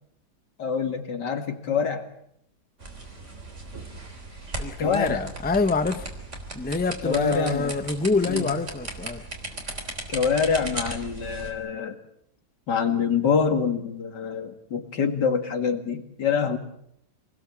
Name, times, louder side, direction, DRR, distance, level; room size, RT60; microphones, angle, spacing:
voice 1, 0.6-2.1 4.8-5.2 7.0-7.7 8.2-8.5 10.1-12.0 12.7-16.6, left 6 dB, 85° left, 6 dB, 2.7 m, -25 dB
sound 1, 2.8-11.5, right 2 dB, 45° right, 3.9 m, -37 dB
voice 2, 4.6-6.1 6.5-9.2, left 3 dB, 10° left, 9 dB, 0.7 m, -26 dB
27.5 x 20.0 x 7.3 m, 0.75 s
omnidirectional pair, 1.8 m